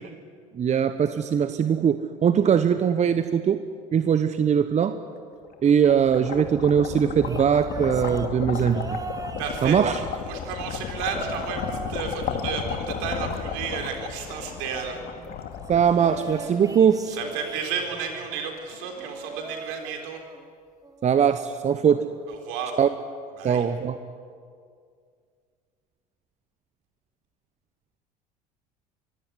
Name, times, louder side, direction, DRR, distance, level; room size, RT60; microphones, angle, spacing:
voice 1, 0.5-3.6 3.9-4.9 5.6-8.8 9.6-10.0 15.7-17.0 21.0-22.0 22.8-22.9 23.4-24.0, right 8 dB, 35° right, 10 dB, 1.1 m, -21 dB
sound 1, 5.5-16.7, left 7 dB, 50° left, 2.6 m, -33 dB
sound 2, 7.2-10.5 11.1-12.1 12.3-13.9 15.9-18.1 19.0-20.5 20.8-21.2 22.3-22.4, right 3 dB, 15° right, 1.6 m, -40 dB
voice 2, 9.4-15.0 17.1-20.2 22.3-22.8 23.4-23.6, right 6 dB, 65° right, 3 dB, 4.0 m, -32 dB
sound 3, 13.7-19.4, left 1 dB, 85° left, 4.0 m, -49 dB
24.0 x 16.0 x 9.9 m, 2.2 s
hypercardioid pair, 65°, 20 cm